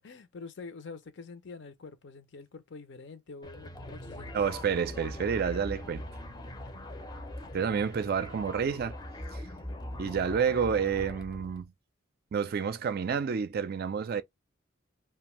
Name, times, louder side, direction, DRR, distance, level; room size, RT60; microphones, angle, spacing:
voice 1, 0.0-4.6, left 4 dB, 60° left, 0.6 m, -46 dB
sound 1, 3.4-11.7, left 1 dB, 20° left, 0.5 m, -41 dB
voice 2, 4.3-6.1 7.5-9.0 9.3-9.4 10.0-11.7 12.3-14.2, right 6 dB, 50° right, 0.4 m, -29 dB
2.6 x 2.3 x 3.0 m
head